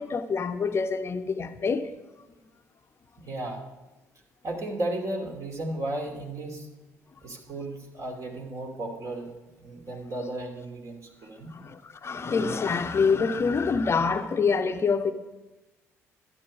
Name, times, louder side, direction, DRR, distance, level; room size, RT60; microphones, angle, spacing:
voice 1, 0.0-1.9 11.5-15.1, left 5 dB, 35° left, 0.7 m, -26 dB
voice 2, 3.2-3.6 4.4-6.7 7.2-9.3 9.6-11.5, right 1 dB, 45° right, 2.7 m, -34 dB
11.5 x 10.0 x 5.1 m
figure-of-eight pair, 50°, 8 cm